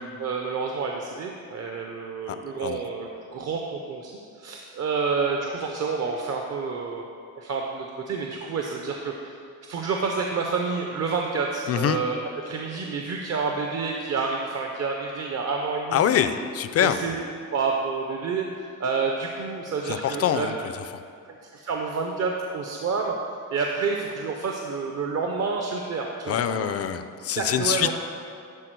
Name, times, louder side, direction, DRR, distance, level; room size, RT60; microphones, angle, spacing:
voice 1, 0.2-7.1 7.4-16.3 16.8-17.1 17.5-20.5 21.5-23.2 23.5-26.7 27.4-27.9, right 4 dB, 50° right, 1 dB, 0.6 m, -29 dB
voice 2, 11.7-12.0 15.9-17.0 19.9-20.5 26.3-27.9, left 9 dB, 50° left, 11 dB, 0.4 m, -24 dB
11.0 x 4.3 x 4.6 m, 2.3 s
cardioid pair, 125°, 32 cm